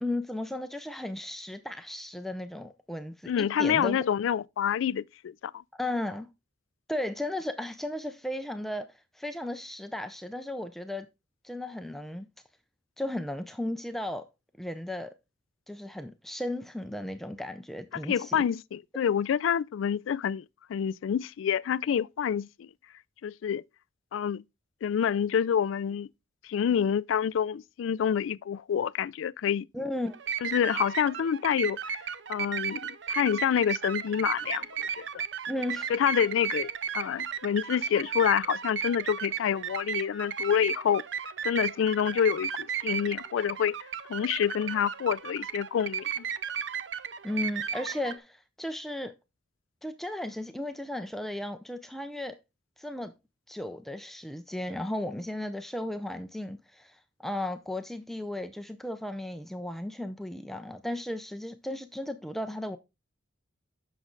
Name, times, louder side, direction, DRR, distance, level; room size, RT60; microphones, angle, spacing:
voice 1, 0.0-3.3 3.6-4.0 5.7-6.3 6.9-11.1 11.4-12.3 13.0-14.2 14.6-15.1 15.7-18.4 29.7-30.1 35.5-35.9 47.2-49.1 49.8-52.3 52.8-53.1 53.5-62.8, left 1 dB, ahead, 0.5 m, -35 dB
voice 2, 3.3-5.6 17.9-20.4 20.7-22.7 23.2-23.6 24.1-24.4 24.8-26.1 26.4-29.7 30.4-32.0 32.3-35.2 35.9-41.0 41.4-43.7 44.1-46.2, left 8 dB, 80° left, 0.3 m, -27 dB
sound 1, 30.1-48.2, right 7 dB, 65° right, 0.6 m, -35 dB
8.2 x 6.1 x 3.8 m
head